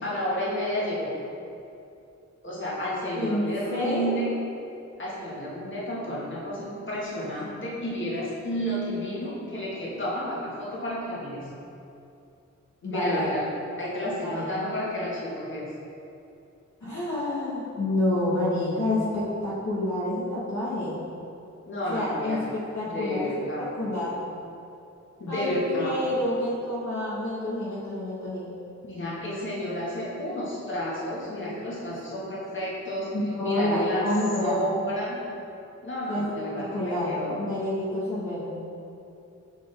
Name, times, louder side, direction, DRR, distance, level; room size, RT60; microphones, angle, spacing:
voice 1, 0.0-1.1 2.4-4.3 5.0-11.5 12.9-13.5 13.8-15.7 21.7-22.4 22.8-23.7 25.2-25.9 28.8-33.1 33.4-34.1 34.4-35.2 35.8-37.4, equal, 40° left, -7 dB, 1.5 m, -31 dB
voice 2, 3.7-4.1 12.8-13.2 14.2-14.5 16.8-21.0 21.9-23.3 23.8-24.2 25.3-28.5 33.1-34.6 36.1-38.6, left 1 dB, 70° left, -8 dB, 1.2 m, -28 dB
5.7 x 5.1 x 3.3 m, 2.7 s
wide cardioid pair, 100°, 29 cm